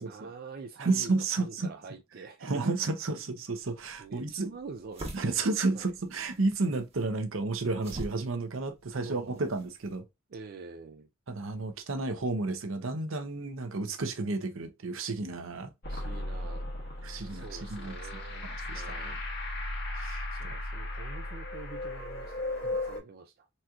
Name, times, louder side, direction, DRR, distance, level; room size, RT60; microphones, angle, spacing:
voice 1, 0.0-2.8 4.0-5.9 9.0-9.4 10.3-11.1 15.9-16.7 17.3-18.5 18.7-19.2 20.3-23.5, right 4 dB, 50° right, 0.4 m, -45 dB
voice 2, 0.8-1.7 2.4-4.5 5.1-10.0 11.3-15.7 17.0-18.0 18.4-19.1 19.9-20.3, right 3 dB, 75° right, 0.8 m, -32 dB
sound 1, 3.6-10.0, right 1 dB, 30° right, 1.3 m, -47 dB
sound 2, 15.8-23.0, left 1 dB, 55° left, 1.5 m, -36 dB
4.1 x 2.9 x 2.3 m
head